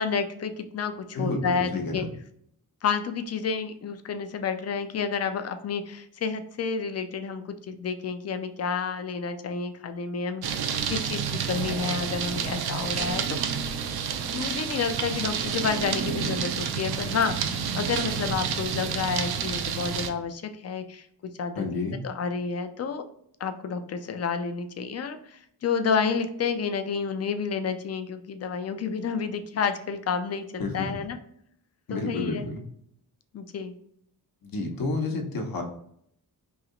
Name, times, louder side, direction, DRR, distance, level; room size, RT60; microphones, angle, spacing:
voice 1, 0.0-2.1 2.8-13.5 14.3-21.7 22.0-23.0 23.4-31.2 31.9-32.5 33.3-33.8, left 5 dB, 45° left, 9 dB, 0.4 m, -30 dB
voice 2, 1.1-2.1 21.6-22.0 30.6-30.9 31.9-32.6 34.4-35.6, left 3 dB, 65° left, 2 dB, 0.9 m, -30 dB
sound 1, 10.4-20.1, right 7 dB, 85° right, 0.5 m, -29 dB
3.1 x 2.8 x 3.7 m, 0.69 s
wide cardioid pair, 145°, 37 cm